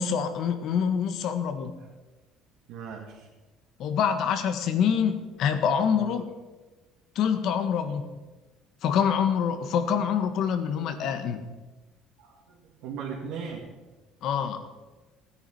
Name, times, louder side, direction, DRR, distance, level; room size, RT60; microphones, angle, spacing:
voice 1, 0.0-1.7 3.8-6.2 7.1-8.1 8.8-11.5 14.2-14.7, left 7 dB, 60° left, 8 dB, 1.6 m, -26 dB
voice 2, 2.7-3.3 5.9-6.3 12.2-13.7, right 6 dB, 75° right, -4 dB, 2.5 m, -38 dB
16.0 x 10.0 x 5.7 m, 1.2 s
cardioid pair, 135°, 0 cm